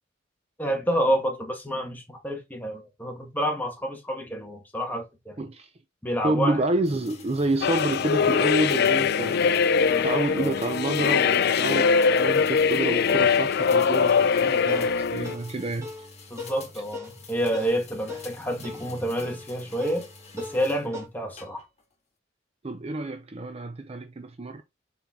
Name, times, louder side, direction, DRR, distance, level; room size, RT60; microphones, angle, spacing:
voice 1, 0.6-5.4 6.0-6.6 9.9-10.5 16.3-20.1 20.3-21.6, equal, 10° left, 1.7 m, -29 dB
voice 2, 5.4-5.7 6.2-9.4 10.0-15.9 22.6-24.6, right 2 dB, 30° right, 0.5 m, -28 dB
sound 1, 6.8-20.9 21.4-21.9, left 4 dB, 35° left, 1.9 m, -48 dB
sound 2, 7.6-15.3, left 6 dB, 50° left, 0.4 m, -22 dB
sound 3, 14.7-21.1, left 3 dB, 15° right, 2.1 m, -41 dB
7.1 x 4.4 x 3.7 m
head